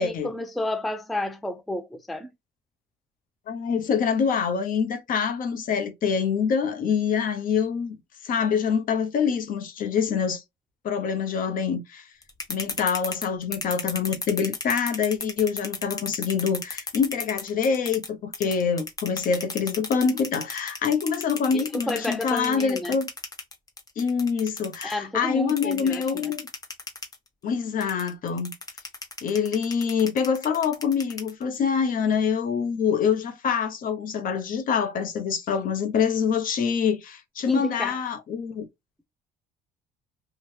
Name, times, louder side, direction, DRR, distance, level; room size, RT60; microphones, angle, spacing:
voice 1, 0.0-2.3 21.5-23.0 24.8-26.3 37.5-38.0, left 1 dB, ahead, 0.4 m, -31 dB
voice 2, 3.5-7.9 8.2-10.4 10.8-12.1 12.5-23.1 24.0-26.4 27.4-28.5 29.2-38.7, left 6 dB, 55° left, 0.8 m, -25 dB
sound 1, 12.2-18.1 18.3-24.9 25.5-27.2 27.8-31.5, left 3 dB, 20° left, 0.9 m, -34 dB
2.8 x 2.3 x 3.2 m
cardioid pair, 110°, 17 cm